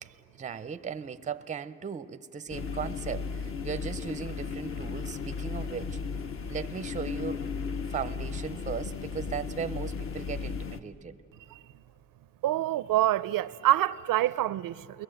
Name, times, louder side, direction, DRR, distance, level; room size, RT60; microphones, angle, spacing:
voice 1, 0.0-6.0 6.5-7.4 7.9-11.2, right 6 dB, 20° right, 0.5 m, -37 dB
sound 1, 2.5-10.8, left 5 dB, 40° left, 0.8 m, -35 dB
voice 2, 12.4-15.0, right 14 dB, 75° right, 0.5 m, -26 dB
29.0 x 21.5 x 7.8 m
cardioid pair, 145°, 34 cm